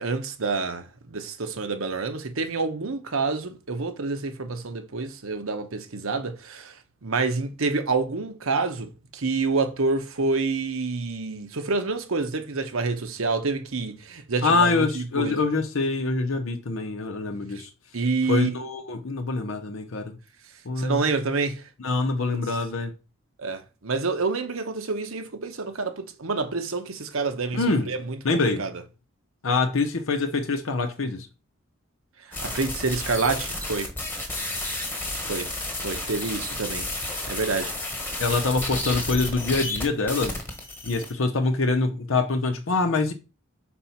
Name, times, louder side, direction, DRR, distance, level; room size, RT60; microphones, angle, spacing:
voice 1, 0.0-6.8 7.0-15.4 17.9-18.6 20.8-21.6 22.3-22.4 23.4-28.7 32.4-33.9 35.2-35.5 35.8-36.9 37.3-37.7 38.3-38.4, right 4 dB, 70° right, 0.9 m, -28 dB
voice 2, 14.4-17.7 18.3-20.2 20.7-21.0 21.8-22.9 27.5-27.9 28.2-28.7 29.4-31.3 38.2-40.4 40.8-43.1, left 3 dB, 65° left, 0.7 m, -25 dB
sound 1, 32.3-41.1, left 2 dB, 10° left, 1.3 m, -31 dB
4.4 x 4.2 x 5.7 m
head